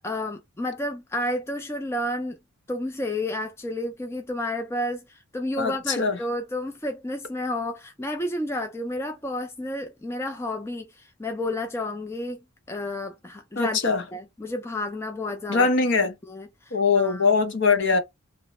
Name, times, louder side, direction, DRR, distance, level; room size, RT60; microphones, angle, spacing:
voice 1, 0.0-2.4 2.7-12.4 12.7-15.7 16.2-17.3, left 1 dB, 10° left, 0.4 m, -31 dB
voice 2, 5.6-6.2 13.6-14.0 15.5-16.1 16.7-18.0, left 4 dB, 60° left, 0.8 m, -22 dB
2.8 x 2.1 x 4.0 m
head